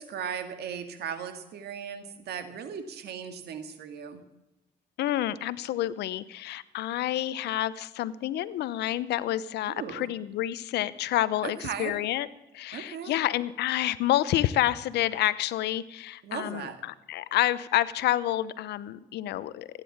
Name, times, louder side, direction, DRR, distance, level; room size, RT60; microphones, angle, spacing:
voice 1, 0.0-4.2 9.7-10.1 11.4-12.0 12.7-13.1 16.2-16.8, right 7 dB, 75° right, 8 dB, 1.9 m, -37 dB
voice 2, 5.0-12.3 12.5-19.7, left 13 dB, 80° left, 16 dB, 0.8 m, -28 dB
16.5 x 9.9 x 7.2 m, 0.96 s
supercardioid pair, 70°, 17 cm